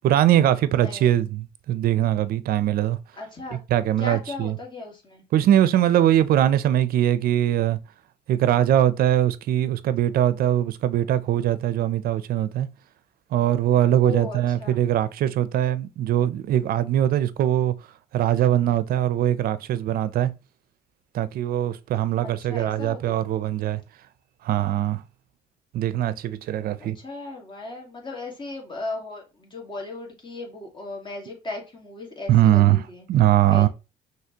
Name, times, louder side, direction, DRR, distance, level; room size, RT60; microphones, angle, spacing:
voice 1, 0.0-3.0 3.5-4.6 5.3-7.8 8.3-12.7 13.3-17.7 18.1-20.3 21.1-23.8 24.4-25.0 25.7-27.0 32.3-33.7, right 12 dB, 60° right, 0.5 m, -21 dB
voice 2, 0.7-1.3 3.2-3.6 4.0-5.2 14.0-14.8 22.2-23.2 26.8-33.1 33.5-33.7, left 3 dB, 30° left, 1.8 m, -36 dB
5.8 x 3.1 x 2.9 m
cardioid pair, 110°, 17 cm